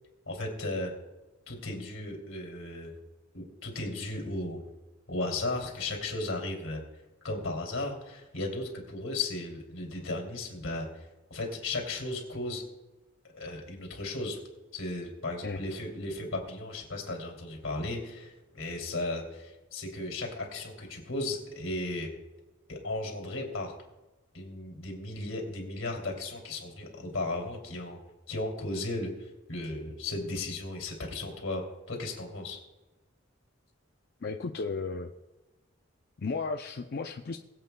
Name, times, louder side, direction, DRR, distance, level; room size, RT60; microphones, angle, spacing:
voice 1, 0.3-0.9 1.5-2.9 3.3-4.6 5.1-6.8 7.2-12.6 13.3-14.4 14.7-22.1 22.7-23.7 24.3-28.0 28.3-32.6, left 2 dB, 80° left, 1 dB, 2.9 m, -35 dB
voice 2, 34.2-35.1 36.2-37.4, left 4 dB, 50° left, 5 dB, 0.5 m, -34 dB
22.0 x 8.1 x 2.3 m, 1.1 s
head